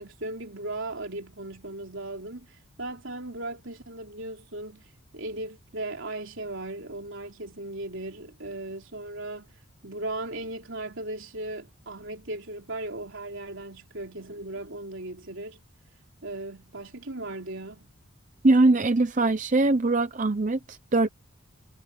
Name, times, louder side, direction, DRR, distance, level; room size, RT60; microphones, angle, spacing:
voice 1, 0.0-4.9 5.1-9.5 9.8-15.6 16.2-17.9, right 2 dB, 60° right, 3.5 m, -37 dB
voice 2, 18.4-21.1, right 2 dB, 35° right, 0.7 m, -22 dB
head